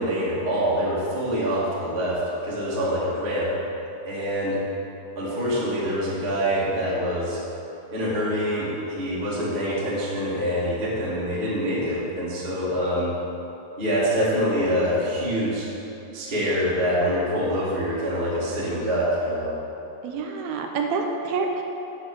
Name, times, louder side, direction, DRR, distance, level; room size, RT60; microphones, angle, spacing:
voice 1, 0.0-3.5 4.0-4.6 5.1-7.4 7.9-13.1 13.8-15.7 16.1-19.5, equal, 20° right, -8 dB, 1.8 m, -25 dB
voice 2, 20.0-21.6, right 4 dB, 80° right, 3 dB, 2.4 m, -27 dB
8.6 x 8.4 x 6.2 m, 3.0 s
omnidirectional pair, 4.6 m